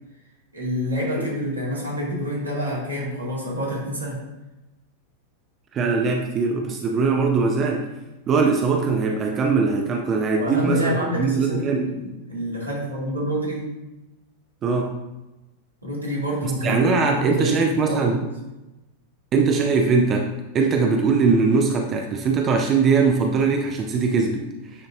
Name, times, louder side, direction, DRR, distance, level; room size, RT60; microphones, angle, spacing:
voice 1, 0.5-4.2 10.4-13.7 15.8-18.3, equal, 85° right, -6 dB, 2.1 m, -27 dB
voice 2, 5.7-7.9 8.3-11.9 14.6-15.0 16.4-18.2 19.3-24.9, right 4 dB, 30° right, 2 dB, 0.6 m, -21 dB
9.3 x 4.0 x 2.7 m, 1.0 s
figure-of-eight pair, 90°, 0 cm